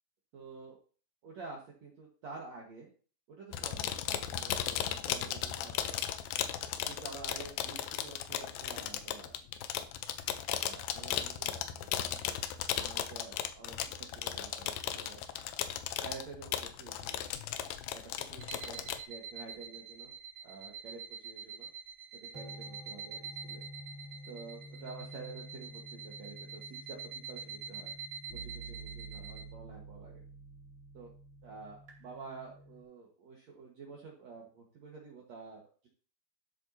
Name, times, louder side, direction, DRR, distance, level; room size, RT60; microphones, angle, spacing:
voice 1, 0.3-0.8 1.2-2.9 3.3-6.0 6.9-9.4 10.6-12.2 12.7-15.2 16.0-17.3 17.9-20.1 20.4-21.7 22.3-23.6 24.3-27.0 27.3-27.9 28.4-30.2 30.9-31.1 31.4-35.9, right 4 dB, 55° right, -1 dB, 2.4 m, -49 dB
sound 1, 3.5-19.0, left 10 dB, 80° left, 2.5 m, -36 dB
sound 2, 18.4-29.4, right 7 dB, 90° right, 3.2 m, -46 dB
sound 3, 22.3-32.8, right 1 dB, 20° right, 2.6 m, -50 dB
12.5 x 8.1 x 2.8 m, 0.39 s
omnidirectional pair, 4.4 m